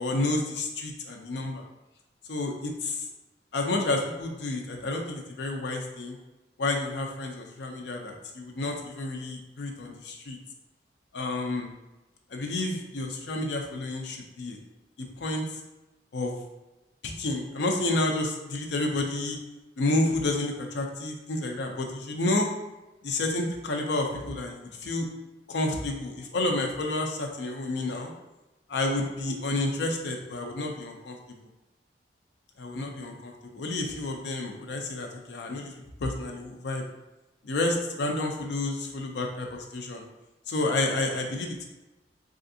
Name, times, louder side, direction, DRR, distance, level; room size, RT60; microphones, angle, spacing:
voice 1, 0.0-1.6 2.3-3.0 3.5-6.2 6.6-10.4 11.1-11.7 12.3-14.6 15.0-15.4 16.1-16.3 17.0-19.4 19.8-22.5 23.0-25.1 25.5-28.1 28.7-31.4 32.6-35.7 36.0-36.9 37.4-40.1 40.5-41.6, left 2 dB, 65° left, 3 dB, 0.5 m, -30 dB
3.4 x 2.4 x 2.6 m, 1.0 s
head